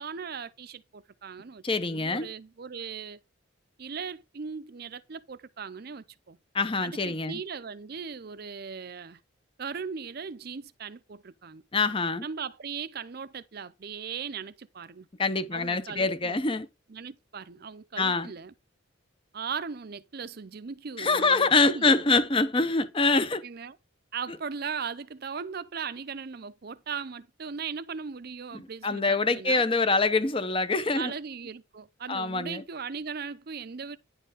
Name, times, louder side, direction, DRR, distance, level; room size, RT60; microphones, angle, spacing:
voice 1, 0.0-3.2 3.8-6.4 6.8-9.2 9.6-11.6 12.2-15.1 15.5-16.4 16.9-18.5 19.3-22.0 23.4-23.8 24.1-29.6 31.0-34.0, right 6 dB, 45° right, 0.5 m, -38 dB
voice 2, 1.6-2.3 6.5-7.4 11.7-12.2 15.2-16.7 18.0-18.3 21.0-23.4 28.5-31.1 32.1-32.6, left 3 dB, 25° left, 0.6 m, -25 dB
10.0 x 4.5 x 4.9 m
head